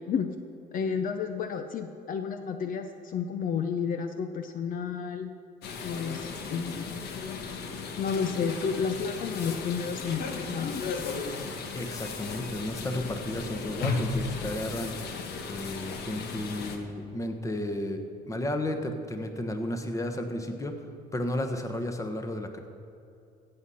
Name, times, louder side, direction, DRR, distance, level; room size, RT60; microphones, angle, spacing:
voice 1, 0.7-5.3 5.8-7.0 8.0-11.0, left 6 dB, 55° left, 7 dB, 0.7 m, -31 dB
sound 1, 5.6-16.8, left 4 dB, 70° left, 1.3 m, -35 dB
voice 2, 11.7-14.9 15.5-18.0 18.3-20.7 21.1-22.6, left 1 dB, 20° left, 6 dB, 1.2 m, -33 dB
15.0 x 7.8 x 5.7 m, 2.7 s
cardioid pair, 110°, 17 cm